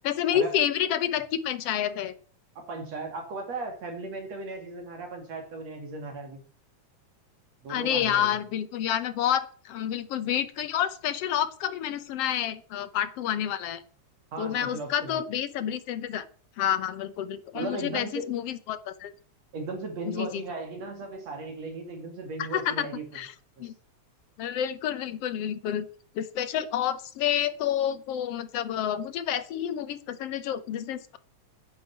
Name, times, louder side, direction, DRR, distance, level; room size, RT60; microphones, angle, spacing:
voice 1, 0.0-2.1 7.7-13.8 14.4-16.3 16.6-19.1 20.1-20.4 22.4-22.9 23.1-23.3 23.6-23.7 24.4-25.9 26.2-31.2, left 10 dB, 65° left, 12 dB, 1.8 m, -29 dB
voice 2, 2.6-6.4 7.6-8.3 14.3-15.2 17.5-18.3 19.5-23.0 23.6-23.7, right 3 dB, 60° right, 4 dB, 3.7 m, -36 dB
10.5 x 8.6 x 9.4 m, 0.43 s
omnidirectional pair, 3.3 m